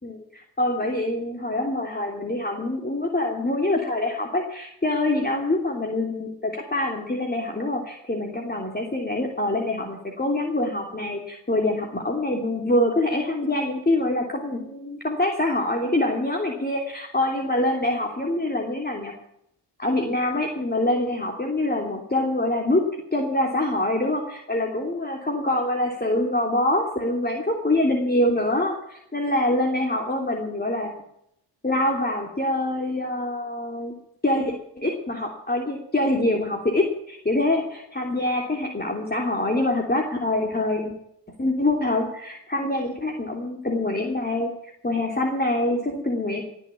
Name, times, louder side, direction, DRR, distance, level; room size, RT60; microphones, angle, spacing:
voice 1, 0.0-19.1 19.8-30.9 31.6-33.9 34.2-40.9 41.4-44.5 44.8-46.4, left 1 dB, 20° left, 0 dB, 3.1 m, -25 dB
18.5 x 7.1 x 8.6 m, 0.76 s
supercardioid pair, 45°, 45 cm